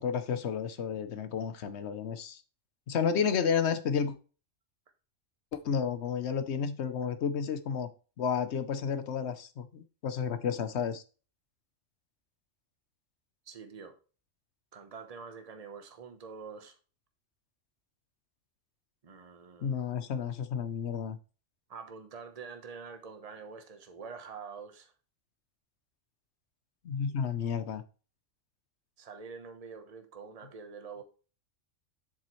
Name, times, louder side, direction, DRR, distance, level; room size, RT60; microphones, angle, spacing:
voice 1, 0.0-2.4 2.9-4.2 5.5-7.9 8.2-11.0 19.6-21.2 26.8-27.8, left 7 dB, 65° left, 1.0 m, -31 dB
voice 2, 13.5-14.0 14.7-16.8 19.0-19.8 21.7-24.9 29.0-31.0, right 5 dB, 30° right, 1.0 m, -46 dB
7.5 x 7.2 x 3.1 m
omnidirectional pair, 1.3 m